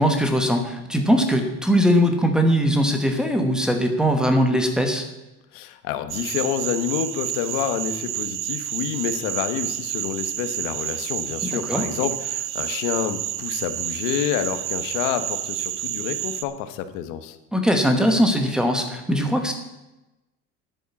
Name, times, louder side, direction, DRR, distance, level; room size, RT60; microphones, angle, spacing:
voice 1, 0.0-5.0 11.4-11.8 17.5-19.5, equal, ahead, 5 dB, 1.1 m, -20 dB
voice 2, 5.5-17.4, left 10 dB, 90° left, 10 dB, 1.2 m, -28 dB
sound 1, 6.1-16.4, right 13 dB, 45° right, 0.6 m, -29 dB
10.0 x 9.1 x 7.1 m, 1.0 s
cardioid pair, 175°, 31 cm